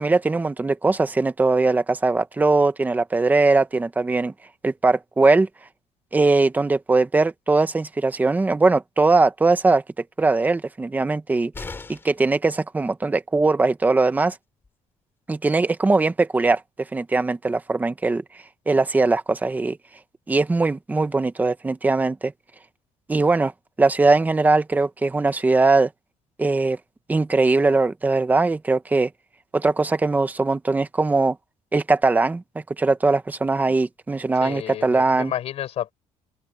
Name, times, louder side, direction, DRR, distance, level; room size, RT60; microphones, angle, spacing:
voice 1, 0.0-4.3 4.6-5.5 6.1-9.8 10.2-11.5 11.9-14.3 15.3-16.6 16.9-18.2 18.7-19.8 20.3-22.3 23.1-23.5 23.8-25.9 26.4-26.8 27.1-29.1 29.5-31.4 31.7-32.4 32.8-35.3, right 3 dB, 15° right, 1.2 m, -20 dB
sound 1, 11.5-12.3 14.2-14.3 14.6-14.7, left 3 dB, 20° left, 3.1 m, -37 dB
voice 2, 34.4-35.9, left 11 dB, 60° left, 5.3 m, -31 dB
open air
cardioid pair, 140°, 12 cm